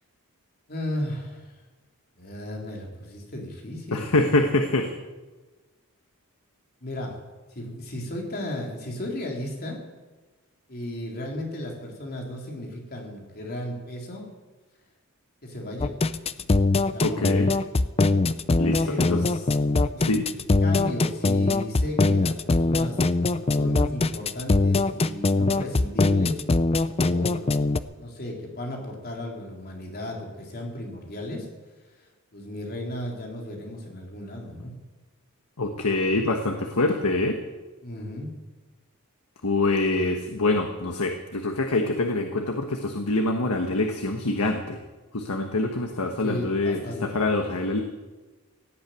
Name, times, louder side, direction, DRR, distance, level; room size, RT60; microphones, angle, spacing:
voice 1, 0.7-1.5 2.2-4.1 6.8-7.2 7.6-9.8 10.7-14.3 15.4-15.9 16.9-17.4 18.8-19.2 20.0-20.2 20.6-23.0 23.5-26.4 27.0-27.7 28.0-31.5 32.3-34.7 37.8-38.3 46.0-47.2, left 1 dB, 45° left, 0 dB, 3.7 m, -34 dB
voice 2, 3.9-4.9 17.0-17.5 18.6-19.2 20.0-20.3 35.6-37.4 39.4-44.8 45.1-47.8, left 2 dB, 80° left, 4 dB, 1.3 m, -25 dB
sound 1, 15.8-27.8, left 3 dB, 25° left, 0.5 m, -22 dB
17.0 x 8.8 x 9.2 m, 1.2 s
head